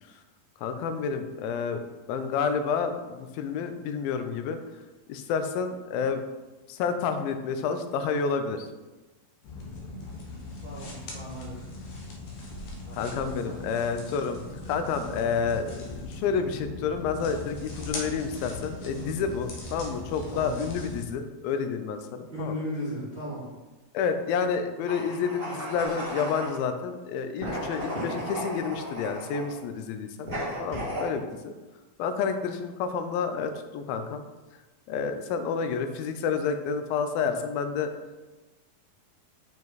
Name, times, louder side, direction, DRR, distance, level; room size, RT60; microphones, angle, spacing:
voice 1, 0.6-1.8 2.1-4.6 5.1-6.2 6.7-8.7 12.9-14.4 14.7-22.6 23.9-30.3 30.6-31.5 32.0-34.2 34.9-37.9, left 6 dB, 85° left, 8 dB, 2.4 m, -29 dB
sound 1, 9.4-21.0, left 2 dB, 65° left, 1.9 m, -39 dB
voice 2, 10.6-11.6 12.8-13.6 19.0-19.1 20.3-20.6 22.3-23.4, equal, 45° right, -8 dB, 0.5 m, -36 dB
sound 2, 24.8-26.6 27.4-29.5 30.3-31.1, equal, 20° right, 1.9 m, -34 dB
7.2 x 5.2 x 4.0 m, 1.2 s
omnidirectional pair, 4.1 m